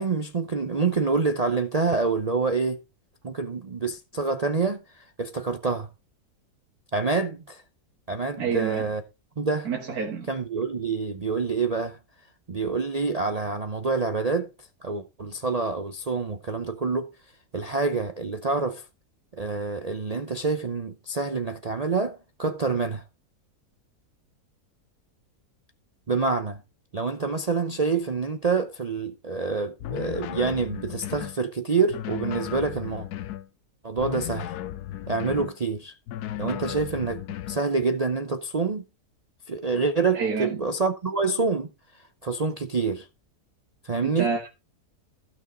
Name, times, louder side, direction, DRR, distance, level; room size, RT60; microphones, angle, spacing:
voice 1, 0.0-2.8 3.2-5.9 6.9-7.6 8.1-9.0 9.4-9.7 10.3-12.0 12.5-14.5 14.8-17.1 17.5-18.8 19.3-23.0 26.1-26.6 26.9-33.1 33.8-34.5 35.1-35.9 36.4-38.8 39.5-41.7 42.2-43.1 43.8-44.3, right 4 dB, 45° right, 0.5 m, -27 dB
voice 2, 8.4-8.9 9.7-10.3 40.1-40.6 44.0-44.5, right 5 dB, 70° right, 2.2 m, -28 dB
sound 1, 29.8-31.4 31.9-33.5 34.0-35.6 36.1-37.6, left 13 dB, 80° left, 1.2 m, -35 dB
15.0 x 6.3 x 3.8 m
omnidirectional pair, 1.7 m